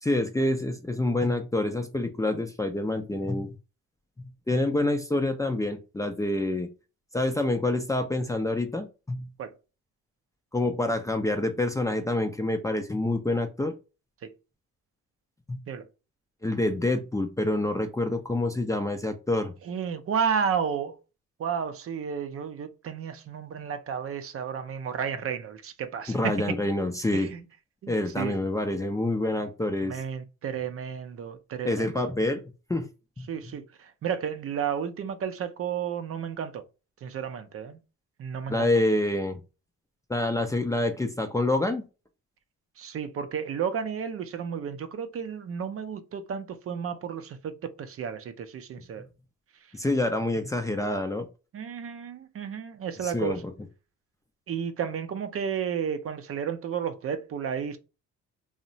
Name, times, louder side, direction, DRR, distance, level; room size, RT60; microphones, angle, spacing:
voice 1, 0.0-3.5 4.5-6.7 7.1-9.2 10.5-13.7 15.5-15.6 16.4-19.5 26.1-27.3 27.9-30.0 31.6-32.4 32.7-32.9 33.2-33.3 38.5-39.4 40.1-41.9 49.7-51.3 53.0-53.5, left 2 dB, 10° left, 0.4 m, -27 dB
voice 2, 19.6-21.0 21.4-26.3 27.1-27.4 27.8-28.4 29.8-31.9 33.3-36.6 37.0-37.8 38.2-38.7 42.8-49.0 51.5-53.4 54.5-57.8, right 7 dB, 50° right, 0.5 m, -32 dB
2.8 x 2.1 x 2.6 m
cardioid pair, 90°, 30 cm